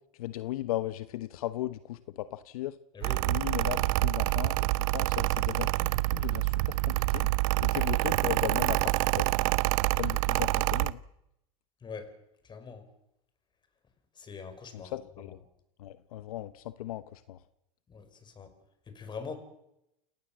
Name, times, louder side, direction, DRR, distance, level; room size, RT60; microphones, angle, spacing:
voice 1, 0.2-2.8 3.3-4.6 4.9-7.3 7.6-9.3 9.9-11.0 14.7-15.4 15.8-17.4, left 15 dB, 80° left, 12 dB, 1.1 m, -37 dB
voice 2, 2.9-3.3 11.8-12.1 12.5-12.9 14.2-14.9 17.9-18.5 18.9-19.4, left 5 dB, 25° left, 9 dB, 5.6 m, -42 dB
Mechanical fan, 3.0-10.9, right 21 dB, 65° right, 0.9 m, -27 dB
29.0 x 16.5 x 7.6 m, 0.83 s
supercardioid pair, 115°, 19 cm